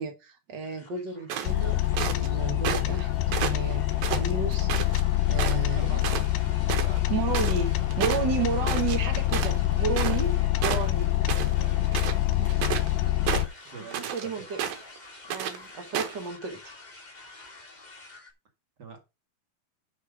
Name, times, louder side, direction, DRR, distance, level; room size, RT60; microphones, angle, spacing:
voice 1, 0.0-1.8 2.1-3.8 4.1-4.7 5.3-6.0 7.1-11.1 13.9-14.6 15.3-16.7, right 5 dB, 60° right, 1.1 m, -32 dB
sound 1, 0.6-18.3, left 3 dB, 65° left, 0.4 m, -49 dB
sound 2, 1.3-2.3 2.7-3.0 3.3-5.0 5.4-5.7 6.0-6.3 6.5-10.4 10.6-11.6 11.9-12.9 13.3-14.3 14.6-15.0 15.3-15.6 16.0-16.2, right 9 dB, 80° right, 3.0 m, -31 dB
sound 3, 1.5-13.5, left 15 dB, 80° left, 2.7 m, -26 dB
voice 2, 5.3-6.4 6.8-7.1 11.2-12.5 13.7-14.5 18.8-19.0, right 5 dB, 35° right, 2.0 m, -45 dB
11.0 x 5.2 x 4.9 m
omnidirectional pair, 4.2 m